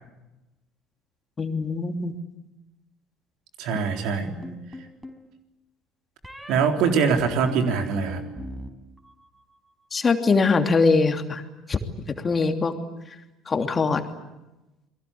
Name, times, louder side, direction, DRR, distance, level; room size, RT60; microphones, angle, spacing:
voice 1, 1.4-2.1 4.2-4.6 9.9-11.4 11.7-11.8 12.1-12.7 13.5-14.0, left 4 dB, 30° left, 6 dB, 2.9 m, -22 dB
voice 2, 3.6-4.3 6.5-8.2, right 6 dB, 60° right, 5 dB, 3.7 m, -23 dB
sound 1, 4.4-5.2 6.2-6.6 7.2-8.7 9.0-9.6, right 1 dB, 5° right, 4.9 m, -39 dB
29.5 x 22.5 x 8.6 m, 1.0 s
figure-of-eight pair, 60°, 0 cm